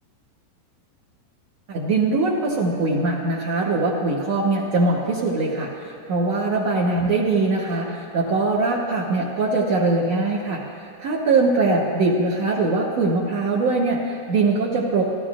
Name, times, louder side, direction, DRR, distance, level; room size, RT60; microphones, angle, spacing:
voice 1, 1.7-10.6 11.0-15.0, right 3 dB, 85° right, -4 dB, 1.4 m, -22 dB
28.0 x 13.5 x 2.6 m, 2.2 s
omnidirectional pair, 5.1 m